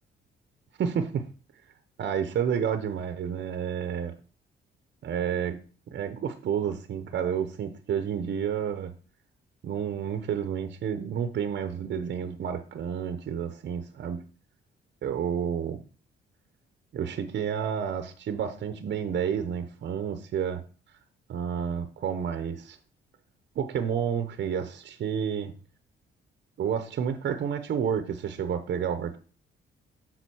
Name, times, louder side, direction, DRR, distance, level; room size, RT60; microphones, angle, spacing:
voice 1, 0.8-1.3 2.0-4.2 5.0-5.6 5.9-8.9 9.6-14.2 15.0-15.8 16.9-20.6 21.3-22.8 23.6-25.5 26.6-29.2, right 8 dB, 60° right, 0.8 m, -30 dB
6.9 x 3.9 x 6.2 m
cardioid pair, 90°, 20 cm